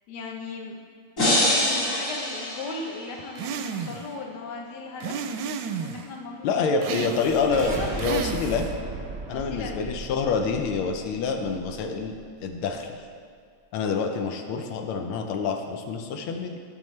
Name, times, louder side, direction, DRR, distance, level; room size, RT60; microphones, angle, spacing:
voice 1, 0.1-0.8 1.3-5.3 5.8-7.9 9.3-9.9, left 3 dB, 60° left, 1 dB, 1.4 m, -37 dB
sound 1, 1.2-3.3, left 1 dB, 40° left, 2.3 m, -25 dB
sound 2, 3.4-4.1 5.0-6.1 6.8-7.5 8.0-8.8, right 6 dB, 75° right, 1.1 m, -32 dB
voice 2, 6.4-8.7 9.3-12.9 13.7-16.6, left 5 dB, 90° left, 4 dB, 1.6 m, -27 dB
sound 3, 7.1-12.2, right 3 dB, 45° right, 0.6 m, -37 dB
13.5 x 6.5 x 3.2 m, 2.1 s
omnidirectional pair, 2.3 m